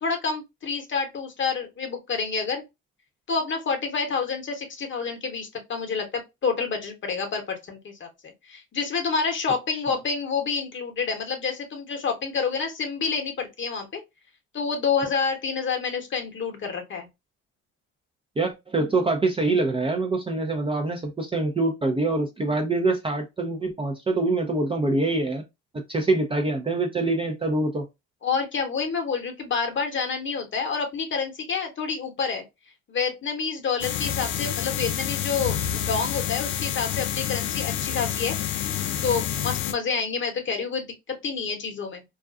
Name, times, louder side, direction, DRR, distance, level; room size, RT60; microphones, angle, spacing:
voice 1, 0.0-2.6 3.3-14.0 14.5-17.1 28.2-32.4 32.9-38.7 39.0-42.0, left 5 dB, 35° left, 0.9 m, -28 dB
voice 2, 18.4-25.4 25.9-27.9, right 2 dB, 15° right, 0.5 m, -25 dB
sound 1, 33.8-39.7, left 10 dB, 60° left, 0.5 m, -28 dB
2.4 x 2.2 x 2.3 m
supercardioid pair, 75°, 33 cm